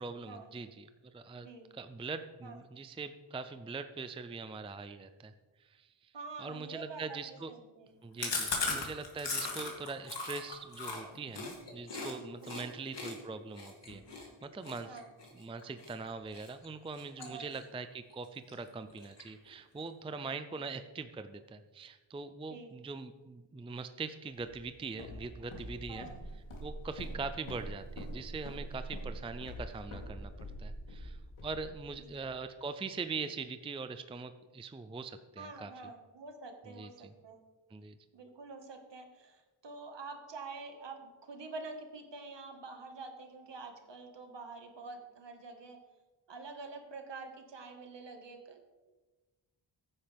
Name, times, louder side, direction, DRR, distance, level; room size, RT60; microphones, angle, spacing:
voice 1, 0.0-1.5 1.7-5.3 5.6-6.1 6.4-7.5 8.0-15.0 15.3-26.1 26.6-30.3 30.6-35.7 36.8-37.1 37.7-38.0, right 4 dB, 10° right, 10 dB, 0.4 m, -42 dB
voice 2, 1.3-1.7 2.4-2.6 6.1-8.5 12.4-12.7 14.8-15.1 17.2-17.5 20.5-20.6 22.5-22.8 25.9-26.2 32.0-32.2 35.4-37.4 38.1-45.8 46.3-48.6, right 3 dB, 60° right, 5 dB, 1.8 m, -47 dB
Chewing mastication, 8.2-12.1 12.4-12.6 12.9-15.9 16.3-16.7 16.9-17.8 18.1-18.2 18.5-18.6 18.9-19.5, left 3 dB, 60° left, 2.8 m, -38 dB
Walk footsteps, 24.4-32.3, right 1 dB, 85° left, 3.1 m, -44 dB
15.0 x 9.8 x 3.5 m, 1.2 s
wide cardioid pair, 125°, 48 cm